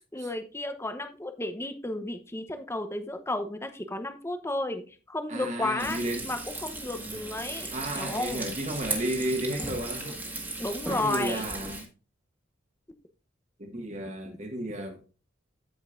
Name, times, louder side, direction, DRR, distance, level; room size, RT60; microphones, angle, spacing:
voice 1, 0.1-8.4 10.6-11.4, left 2 dB, 15° left, 0.8 m, -33 dB
voice 2, 5.3-6.3 7.0-7.3 7.7-10.2 10.9-11.9 13.6-15.0, right 1 dB, 35° right, 1.6 m, -33 dB
Frying (food), 5.8-11.8, right 2 dB, 10° right, 1.7 m, -36 dB
14.0 x 5.2 x 2.5 m
head